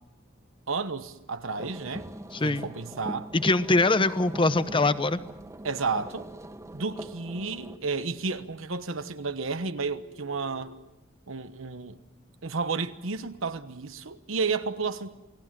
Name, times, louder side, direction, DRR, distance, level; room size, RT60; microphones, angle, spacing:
voice 1, 0.7-2.1 2.4-3.3 5.6-6.3 6.7-10.7 11.3-12.0 12.4-15.1, right 4 dB, 80° right, 1.1 m, -32 dB
sound 1, 1.5-7.8, right 1 dB, 15° right, 0.8 m, -42 dB
voice 2, 2.3-2.7 3.3-5.2, left 2 dB, 25° left, 0.9 m, -23 dB
Telephone, 6.8-7.8 9.7-10.8, left 2 dB, 65° left, 3.7 m, -52 dB
28.5 x 18.5 x 7.5 m
head